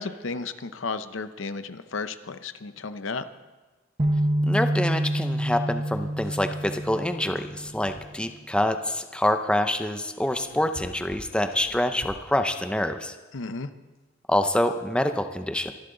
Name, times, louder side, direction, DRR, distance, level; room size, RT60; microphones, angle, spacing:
voice 1, 0.0-3.2 13.3-13.7, left 4 dB, 70° left, 11 dB, 0.7 m, -33 dB
sound 1, 4.0-8.0, right 1 dB, 30° right, 0.9 m, -27 dB
voice 2, 4.5-13.1 14.3-15.7, left 1 dB, 5° left, 7 dB, 0.7 m, -26 dB
sound 2, 5.9-8.3 10.0-12.4, left 1 dB, 85° left, 3.4 m, -47 dB
24.5 x 11.5 x 3.9 m, 1.2 s
head